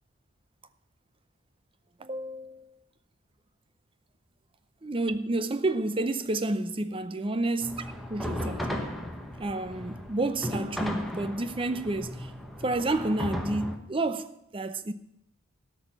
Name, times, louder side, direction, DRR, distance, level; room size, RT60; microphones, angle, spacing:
voice 1, 2.0-2.7 4.8-8.7 9.4-12.3 12.6-14.9, right 2 dB, 25° right, 0.6 m, -30 dB
sound 1, 7.6-13.8, equal, ahead, 1.1 m, -35 dB
13.0 x 6.2 x 8.8 m
head